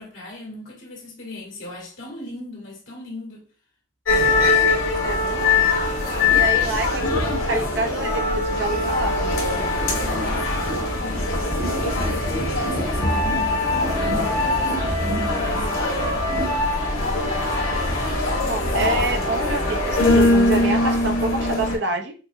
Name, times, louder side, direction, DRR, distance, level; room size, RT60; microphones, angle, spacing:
voice 1, 0.0-3.5 9.9-15.9, left 2 dB, 65° left, 2.2 m, -38 dB
sound 1, 4.1-21.8, left 2 dB, 90° left, 1.7 m, -22 dB
voice 2, 5.0-5.7 6.3-9.2 18.4-22.1, right 2 dB, 60° right, 0.7 m, -27 dB
5.7 x 2.6 x 2.6 m
head